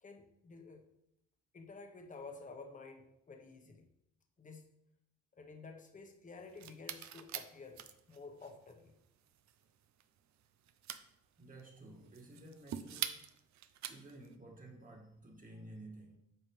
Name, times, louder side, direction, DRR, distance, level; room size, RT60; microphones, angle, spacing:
voice 1, 0.0-0.8 1.5-3.9 4.4-4.7 5.3-8.9, left 4 dB, 25° left, 4 dB, 1.1 m, -52 dB
sound 1, 6.4-14.3, right 10 dB, 65° right, 0.6 m, -46 dB
voice 2, 11.4-13.4 13.9-16.2, right 1 dB, 25° right, 0 dB, 1.9 m, -53 dB
9.0 x 5.5 x 3.3 m, 0.78 s
cardioid pair, 90°, 30 cm